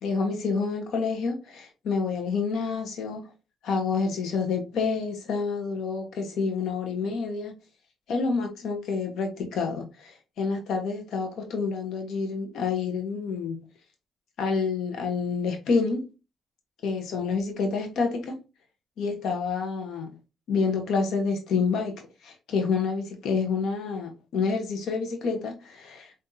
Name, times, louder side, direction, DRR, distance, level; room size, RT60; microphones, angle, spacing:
voice 1, 0.0-3.3 3.6-7.5 8.1-13.6 14.4-16.0 16.8-18.4 19.0-20.1 20.5-26.1, left 4 dB, 75° left, 0.8 m, -28 dB
5.6 x 2.6 x 2.6 m
cardioid pair, 90°, 0 cm